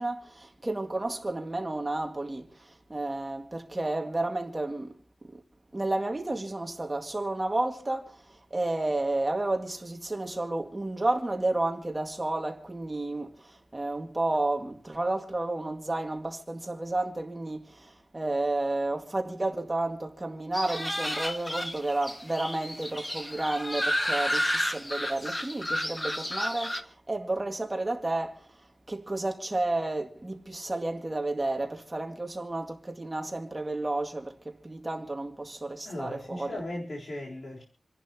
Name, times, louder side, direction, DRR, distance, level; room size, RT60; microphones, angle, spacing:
voice 1, 0.0-5.0 5.3-5.4 5.7-28.5 28.9-36.6, right 2 dB, 25° right, 2.1 m, -31 dB
sound 1, 20.5-26.8, left 1 dB, 20° left, 1.8 m, -31 dB
voice 2, 35.8-37.6, left 1 dB, 65° left, 3.9 m, -37 dB
28.5 x 11.0 x 3.0 m
wide cardioid pair, 100°, 0 cm